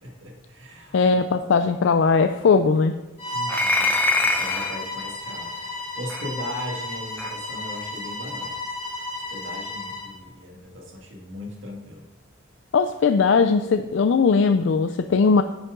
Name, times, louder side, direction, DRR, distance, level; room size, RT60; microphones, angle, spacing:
voice 1, 0.0-1.0 3.3-8.5 9.3-12.0, left 1 dB, 70° right, 0 dB, 1.9 m, -38 dB
voice 2, 0.9-2.9 12.7-15.4, left 5 dB, 65° left, 8 dB, 0.4 m, -19 dB
Bowed string instrument, 3.2-10.1, left 1 dB, 30° left, 3.3 m, -33 dB
sound 1, 3.5-4.8 6.1-6.2 7.2-7.3, left 2 dB, 10° left, 0.6 m, -23 dB
10.0 x 7.2 x 3.8 m, 1.1 s
head